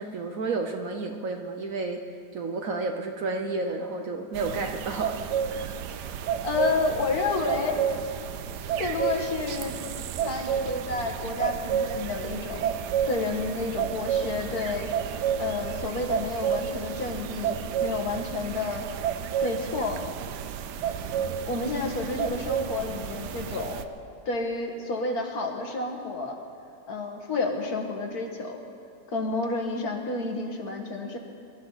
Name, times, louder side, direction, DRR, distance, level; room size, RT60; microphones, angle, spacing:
voice 1, 0.0-2.0 2.3-5.2 5.5-5.9, right 3 dB, 60° right, 4 dB, 1.2 m, -31 dB
sound 1, 4.3-23.8, right 8 dB, 85° right, 1.3 m, -31 dB
voice 2, 5.9-7.8 8.8-9.7 10.2-12.8 13.1-14.9 15.4-18.9 19.4-20.0 21.5-23.8 24.3-26.4 26.9-28.6 29.1-31.2, left 3 dB, 65° left, 2 dB, 2.1 m, -30 dB
23.5 x 13.5 x 4.1 m, 2.5 s
omnidirectional pair, 1.7 m